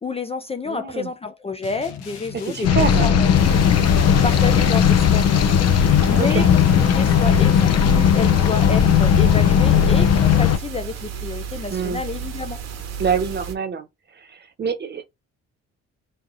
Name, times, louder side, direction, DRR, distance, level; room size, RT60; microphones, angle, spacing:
voice 1, 0.0-3.7 4.0-5.5 6.1-12.6, left 4 dB, 20° left, 0.4 m, -30 dB
voice 2, 0.7-1.1 2.5-3.1 6.1-6.5 11.7-12.0 13.0-13.9 14.3-15.0, right 6 dB, 35° right, 0.9 m, -25 dB
sound 1, 1.6-4.9, left 9 dB, 90° left, 0.9 m, -39 dB
sound 2, 2.6-10.6, left 8 dB, 60° left, 0.6 m, -16 dB
sound 3, 3.3-13.5, right 7 dB, 60° right, 1.0 m, -33 dB
3.2 x 2.7 x 3.8 m
cardioid pair, 85°, 29 cm